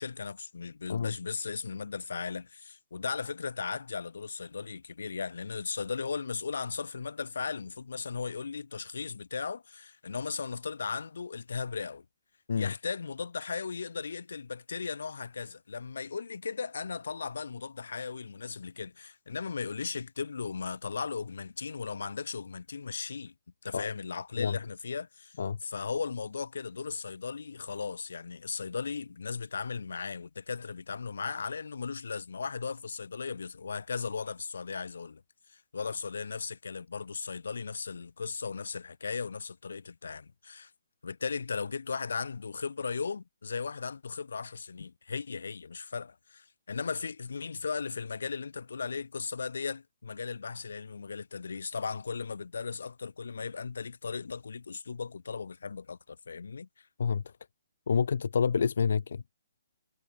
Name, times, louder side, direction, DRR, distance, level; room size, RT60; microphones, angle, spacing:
voice 1, 0.0-12.0 12.5-23.3 23.6-25.3 25.6-35.2 35.5-40.7 41.0-56.9, left 5 dB, 85° left, 2.4 m, -37 dB
voice 2, 57.9-59.2, left 6 dB, 65° left, 0.9 m, -28 dB
hypercardioid pair, 170°, 0 cm